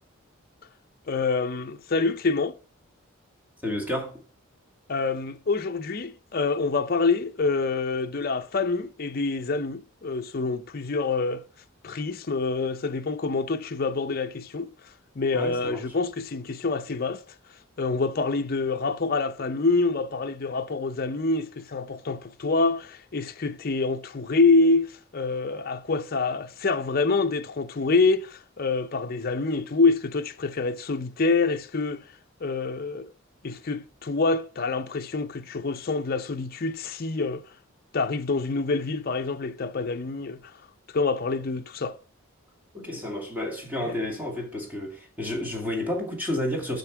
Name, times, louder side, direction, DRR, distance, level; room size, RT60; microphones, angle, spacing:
voice 1, 1.1-2.5 4.9-11.4 11.8-14.7 15.2-17.2 17.8-32.0 32.4-33.1 33.4-37.4 37.9-40.4 40.9-42.0 43.8-44.0, left 3 dB, 45° left, 0.6 m, -26 dB
voice 2, 3.6-4.2 15.3-15.8 42.7-46.8, left 1 dB, 10° right, 2.4 m, -31 dB
9.2 x 5.8 x 4.6 m
head